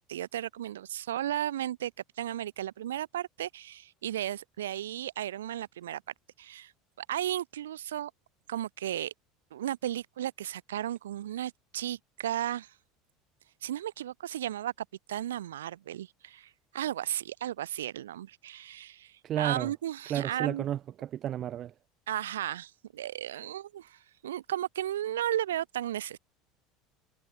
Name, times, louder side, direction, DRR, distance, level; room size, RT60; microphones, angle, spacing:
voice 1, 0.1-1.9 2.2-6.0 6.4-6.7 7.0-8.1 8.5-9.1 9.5-12.7 13.6-20.6 22.1-26.2, right 12 dB, 80° right, 0.4 m, -34 dB
voice 2, 19.2-19.7 20.1-21.7, right 11 dB, 45° right, 0.9 m, -32 dB
hypercardioid pair, 75°, 0 cm